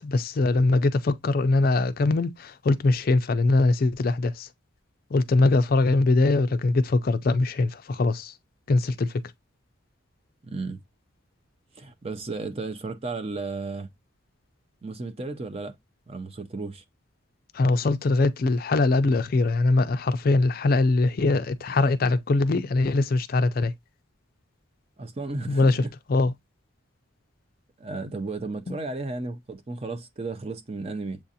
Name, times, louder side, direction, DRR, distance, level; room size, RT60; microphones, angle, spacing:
voice 1, 0.0-4.5 5.1-8.3 8.7-9.2 17.5-23.7 25.5-25.8 26.1-26.3 28.7-28.8, left 2 dB, 45° left, 0.4 m, -22 dB
voice 2, 10.4-10.8 11.8-13.9 14.8-15.8 16.1-16.8 25.0-25.9 27.8-31.2, right 3 dB, 30° right, 0.5 m, -34 dB
7.4 x 2.5 x 2.7 m
head